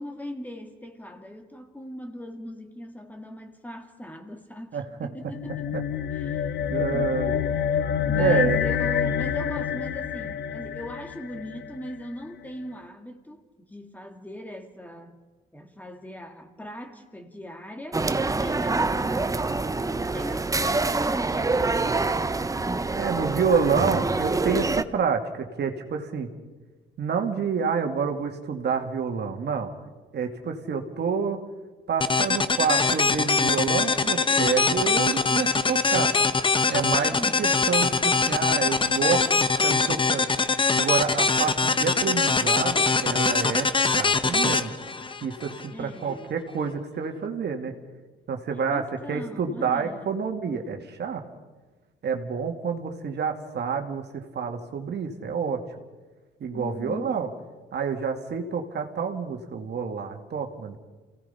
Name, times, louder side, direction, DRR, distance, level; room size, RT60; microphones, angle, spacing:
voice 1, 0.0-5.7 6.1-6.6 6.9-7.2 8.1-15.2 15.5-22.1 37.1-37.5 45.7-46.3 48.7-50.1 50.4-50.6 56.5-57.2, left 1 dB, 10° left, 2.2 m, -39 dB
sound 1, 5.3-11.9, left 8 dB, 60° left, 0.8 m, -27 dB
voice 2, 6.7-7.3 8.2-8.6 23.0-26.3 27.0-29.7 30.1-31.4 31.9-36.1 36.7-39.2 39.6-40.3 40.8-44.7 45.2-47.7 48.3-51.2 52.0-55.6 56.4-57.3 57.7-60.8, right 6 dB, 60° right, 2.2 m, -28 dB
sound 2, 17.9-24.8, right 3 dB, 15° right, 0.8 m, -26 dB
sound 3, 32.0-45.7, left 4 dB, 25° left, 1.0 m, -23 dB
27.5 x 17.5 x 5.7 m
cardioid pair, 90°, 20 cm